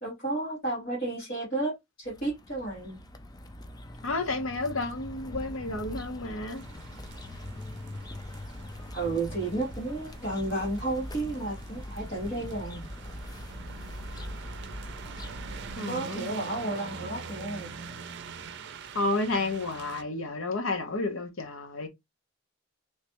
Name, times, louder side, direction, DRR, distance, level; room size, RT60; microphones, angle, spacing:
voice 1, 0.0-3.0 8.9-12.9 15.9-17.7, right 2 dB, 45° left, 2.3 m, -32 dB
sound 1, 2.0-15.8, left 1 dB, 20° left, 0.4 m, -42 dB
voice 2, 4.0-6.6 15.8-16.3 18.9-21.9, left 2 dB, 70° left, 0.9 m, -31 dB
sound 2, 6.5-20.0, right 6 dB, 60° right, 0.5 m, -44 dB
3.2 x 3.2 x 2.9 m
head